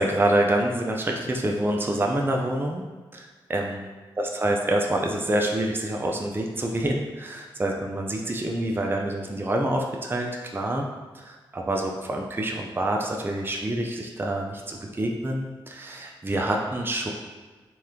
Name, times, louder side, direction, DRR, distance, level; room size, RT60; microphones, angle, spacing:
voice 1, 0.0-2.8 3.1-3.9 4.2-10.9 11.1-17.1, right 1 dB, 20° right, 1 dB, 0.5 m, -27 dB
3.3 x 3.0 x 3.7 m, 1.3 s
supercardioid pair, 45°, 10 cm